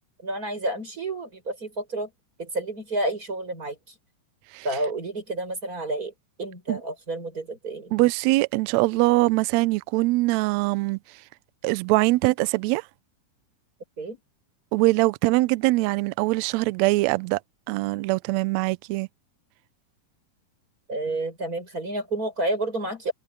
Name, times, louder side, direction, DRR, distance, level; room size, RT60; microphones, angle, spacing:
voice 1, 0.2-2.1 2.4-3.8 4.6-6.1 6.4-7.9 14.0-14.2 20.9-23.1, right 2 dB, 25° right, 6.5 m, -30 dB
voice 2, 7.9-11.0 11.6-12.8 14.7-17.4 17.7-19.1, right 21 dB, 85° right, 1.6 m, -22 dB
omnidirectional pair, 3.7 m